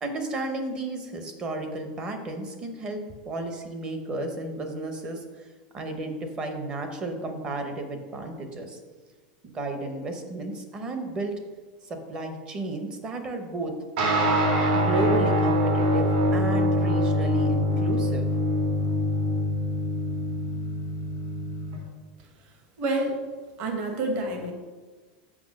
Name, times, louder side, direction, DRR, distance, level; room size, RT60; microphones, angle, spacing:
voice 1, 0.0-5.5 5.7-8.8 9.5-11.3 11.8-13.7 14.7-18.3, right 2 dB, 20° right, 5 dB, 0.8 m, -33 dB
sound 1, 14.0-21.8, equal, 65° right, 2.2 m, -24 dB
voice 2, 22.2-23.2 23.6-24.5, right 2 dB, 35° right, 3 dB, 1.2 m, -29 dB
6.0 x 5.5 x 6.3 m, 1.4 s
supercardioid pair, 180°, 5 cm